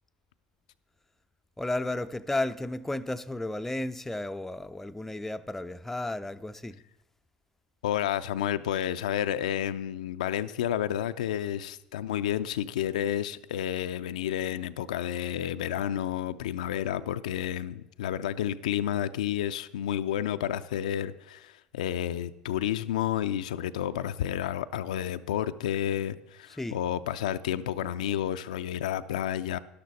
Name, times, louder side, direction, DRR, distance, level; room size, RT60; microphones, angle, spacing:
voice 1, 1.6-6.8 26.6-26.8, left 2 dB, 5° left, 0.5 m, -33 dB
voice 2, 7.8-29.6, left 11 dB, 80° left, 0.4 m, -30 dB
12.0 x 12.0 x 4.1 m
hypercardioid pair, 75°, 4 cm